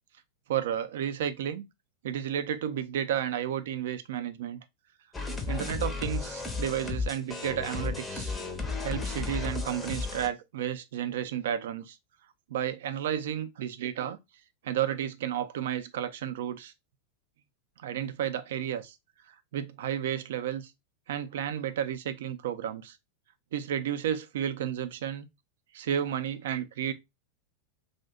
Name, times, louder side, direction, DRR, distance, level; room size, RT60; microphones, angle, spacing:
voice 1, 0.5-1.7 2.0-4.6 5.5-8.4 8.8-12.0 12.5-14.2 14.6-16.7 17.8-19.0 19.3-20.7 21.1-23.0 23.5-25.3 25.7-26.9, right 10 dB, 55° right, 0.4 m, -32 dB
sound 1, 5.1-10.3, left 4 dB, 10° left, 0.6 m, -34 dB
2.6 x 2.1 x 3.4 m
figure-of-eight pair, 90°, 0 cm